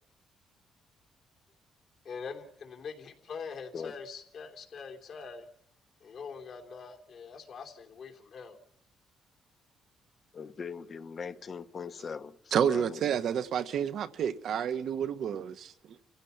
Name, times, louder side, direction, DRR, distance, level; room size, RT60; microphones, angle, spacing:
voice 1, 2.0-5.5 6.0-8.6, left 5 dB, 60° left, 3.2 m, -43 dB
voice 2, 10.3-13.1, left 5 dB, 45° left, 1.1 m, -40 dB
voice 3, 12.5-15.7, right 8 dB, 70° right, 1.1 m, -29 dB
30.0 x 16.0 x 5.8 m
cardioid pair, 90°, 0 cm